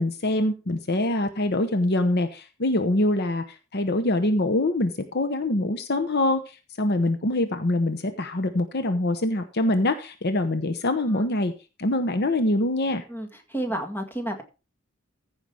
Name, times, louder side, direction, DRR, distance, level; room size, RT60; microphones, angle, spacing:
voice 1, 0.0-11.5 11.8-13.0, left 1 dB, 50° left, 9 dB, 0.9 m, -24 dB
voice 2, 13.1-14.4, right 1 dB, 10° left, 4 dB, 2.0 m, -31 dB
15.0 x 5.7 x 4.8 m, 0.30 s
head